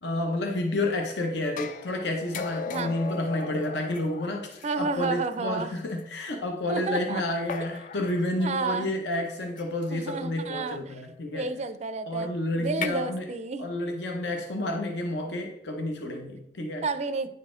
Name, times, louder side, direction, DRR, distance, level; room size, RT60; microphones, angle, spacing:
voice 1, 0.0-11.5 12.1-13.3 13.6-16.8, left 1 dB, 70° left, 3 dB, 0.8 m, -30 dB
sound 1, 1.6-5.1 6.0-6.1 7.5-8.3 9.6-9.9 12.6-12.9, left 5 dB, 45° left, 0.4 m, -37 dB
voice 2, 2.7-3.0 4.6-5.8 6.7-7.2 8.4-8.9 9.9-10.9 11.3-13.7 16.8-17.3, right 4 dB, 40° right, 11 dB, 0.4 m, -31 dB
9.6 x 4.1 x 3.7 m, 0.83 s
head